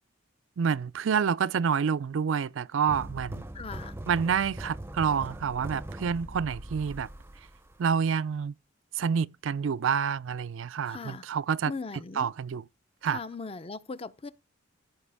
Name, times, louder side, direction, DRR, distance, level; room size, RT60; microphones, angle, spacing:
voice 1, 0.6-3.4 4.1-7.1 7.8-8.5 8.9-11.7 12.2-12.6 13.0-13.2, right 7 dB, 75° right, 0.4 m, -28 dB
sound 1, 2.9-8.1, right 1 dB, 10° right, 0.6 m, -41 dB
voice 2, 3.5-3.9 10.9-11.2 11.7-12.3 13.1-14.3, left 4 dB, 30° left, 0.6 m, -39 dB
15.0 x 5.0 x 3.4 m
head